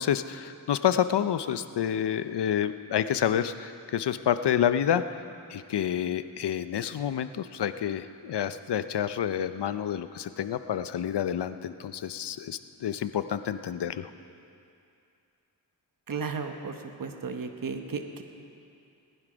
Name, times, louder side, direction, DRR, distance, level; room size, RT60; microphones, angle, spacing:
voice 1, 0.0-5.2 5.5-14.1, left 9 dB, 85° left, 12 dB, 0.6 m, -28 dB
voice 2, 16.1-18.2, right 5 dB, 55° right, 5 dB, 1.2 m, -34 dB
19.0 x 11.0 x 5.1 m, 2.6 s
cardioid pair, 55°, 40 cm